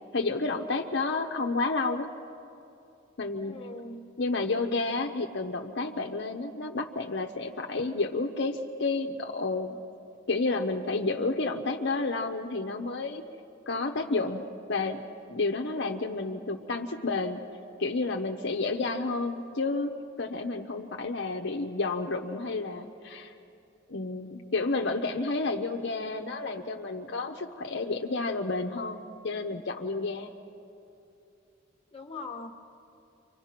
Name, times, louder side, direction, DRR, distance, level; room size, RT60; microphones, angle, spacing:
voice 1, 0.1-2.1 3.2-3.6 4.2-9.7 10.3-13.2 13.7-15.0 15.3-17.4 17.8-23.3 23.9-30.3, left 3 dB, 60° left, 3 dB, 0.9 m, -30 dB
voice 2, 3.4-4.0 31.9-32.5, left 3 dB, 30° left, 3 dB, 1.6 m, -40 dB
29.0 x 25.0 x 5.9 m, 2.8 s
head